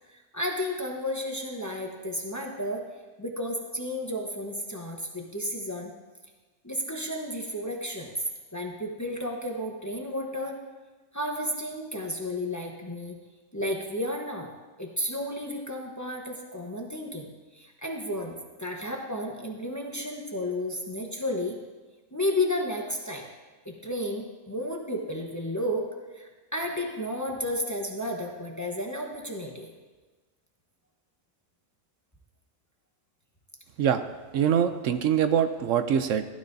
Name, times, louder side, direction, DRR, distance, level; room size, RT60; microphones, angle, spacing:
voice 1, 0.1-2.8 3.2-5.9 6.6-8.1 8.5-10.6 11.1-13.1 13.5-14.5 14.8-21.6 22.1-23.3 23.6-25.9 26.1-29.7, left 1 dB, 15° left, 1 dB, 0.9 m, -32 dB
voice 2, 34.3-36.2, right 8 dB, 75° right, 9 dB, 0.9 m, -24 dB
15.5 x 12.0 x 2.7 m, 1.3 s
omnidirectional pair, 1.4 m